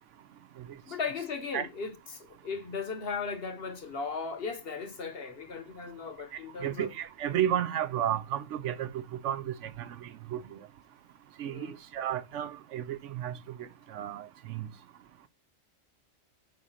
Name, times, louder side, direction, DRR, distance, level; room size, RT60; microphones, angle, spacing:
voice 1, 0.9-6.9 11.5-11.8, left 5 dB, 55° left, 1.1 m, -37 dB
voice 2, 6.6-10.6 11.4-14.7, right 10 dB, 75° right, 0.9 m, -33 dB
5.0 x 3.9 x 5.5 m
omnidirectional pair, 1.3 m